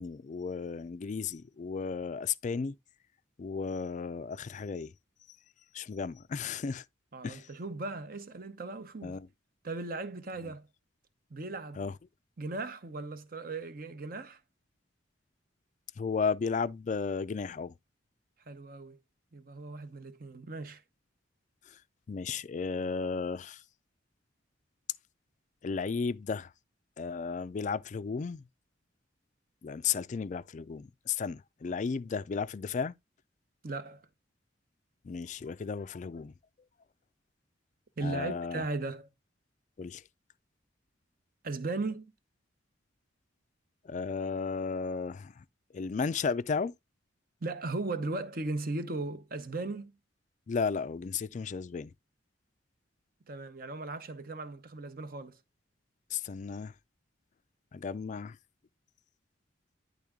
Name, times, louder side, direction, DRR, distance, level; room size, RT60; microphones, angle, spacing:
voice 1, 0.0-2.7 3.4-4.9 5.7-6.8 7.2-7.5 9.0-9.3 11.8-11.9 16.0-17.7 22.1-23.6 25.6-26.5 27.0-28.4 29.6-32.9 35.0-36.3 38.0-38.7 39.8-40.0 43.8-45.4 45.7-46.7 50.5-51.9 56.1-56.7 57.7-58.4, left 5 dB, 40° left, 0.3 m, -34 dB
voice 2, 7.1-9.2 9.6-10.7 11.3-11.8 12.4-14.4 18.5-19.0 19.3-20.8 33.6-34.1 38.0-39.1 41.4-42.1 47.4-49.9 53.3-55.4, right 3 dB, 50° right, 0.8 m, -37 dB
10.0 x 3.5 x 3.6 m
head